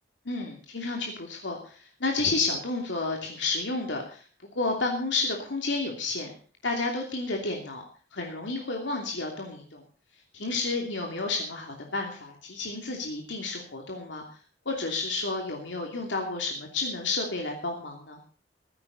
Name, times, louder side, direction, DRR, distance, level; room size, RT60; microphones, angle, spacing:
voice 1, 0.2-4.2 4.5-6.3 6.6-7.8 8.1-9.8 10.3-14.2 14.6-18.2, left 3 dB, 90° left, 1 dB, 2.9 m, -31 dB
16.0 x 15.0 x 4.1 m, 0.41 s
head